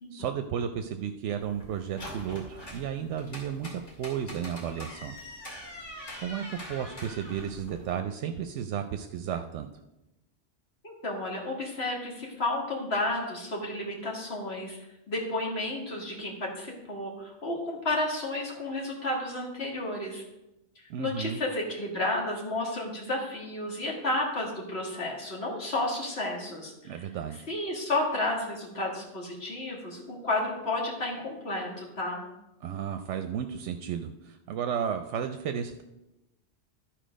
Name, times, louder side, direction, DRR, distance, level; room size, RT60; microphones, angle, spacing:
voice 1, 0.1-3.7 4.0-5.2 6.2-9.7 20.9-21.4 26.8-27.4 32.6-35.8, right 8 dB, 85° right, 7 dB, 0.9 m, -33 dB
sound 1, 1.4-7.9, equal, 85° left, 2.9 m, -44 dB
voice 2, 10.8-14.8 15.1-20.2 21.0-27.0 27.5-32.2, left 2 dB, 60° left, -2 dB, 2.1 m, -32 dB
12.0 x 4.4 x 5.1 m, 0.94 s
omnidirectional pair, 1.2 m